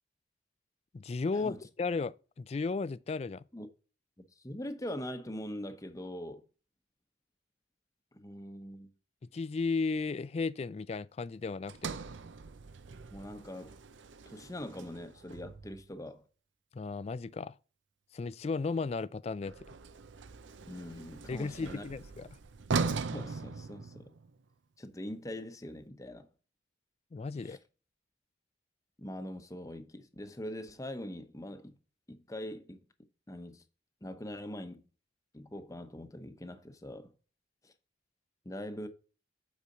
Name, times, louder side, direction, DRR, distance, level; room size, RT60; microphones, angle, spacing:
voice 1, 0.9-3.4 9.3-12.0 16.7-17.6 18.1-19.6 21.3-22.3 27.1-27.6, left 4 dB, 35° left, 0.3 m, -34 dB
voice 2, 4.2-6.4 8.1-8.9 13.1-13.8 14.3-16.2 20.6-21.8 23.1-24.1 24.8-26.3 27.4-27.6 29.0-31.7 32.1-32.8 33.3-33.6 34.0-34.8 35.3-37.1 37.6-37.7 38.4-38.9, left 1 dB, 20° left, 0.8 m, -42 dB
Sliding door, 11.7-16.0 19.4-24.4, right 4 dB, 85° right, 0.6 m, -39 dB
8.4 x 4.9 x 3.9 m
head